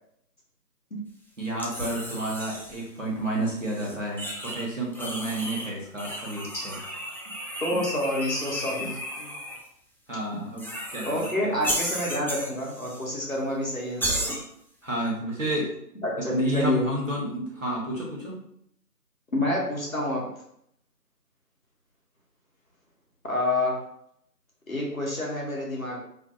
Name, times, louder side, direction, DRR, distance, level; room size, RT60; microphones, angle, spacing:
voice 1, 1.4-6.7 10.1-11.6 14.8-15.7 16.2-18.4, right 1 dB, 50° right, -4 dB, 0.8 m, -30 dB
sound 1, 1.6-2.8 3.5-4.7 4.9-5.7 6.0-9.6 10.6-11.3 11.6-13.1 13.3-13.4 14.0-14.4, equal, 5° left, 0.3 m, -34 dB
voice 2, 7.6-9.3 11.0-14.3 16.0-16.9 19.3-20.3 23.2-23.8 24.7-26.0, left 1 dB, 55° left, -3 dB, 0.7 m, -28 dB
2.5 x 2.2 x 2.4 m, 0.72 s
figure-of-eight pair, 175°, 49 cm